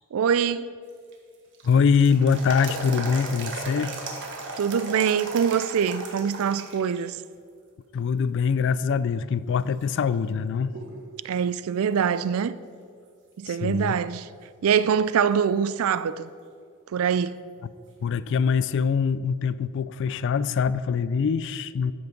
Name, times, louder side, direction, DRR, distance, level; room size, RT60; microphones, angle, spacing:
voice 1, 0.1-0.8 4.6-7.2 11.2-12.6 13.4-14.3 14.6-16.3 16.9-17.5, right 7 dB, 70° right, 0.4 m, -24 dB
sound 1, 0.9-7.0 7.4-7.5 8.2-8.7 9.2-9.3 9.8-11.0 11.3-11.4 14.8-14.9 17.9-18.0, right 3 dB, 55° right, 1.4 m, -37 dB
voice 2, 1.6-4.0 7.9-10.8 13.5-14.0 18.0-21.9, left 6 dB, 55° left, 0.3 m, -23 dB
13.5 x 5.9 x 5.2 m
head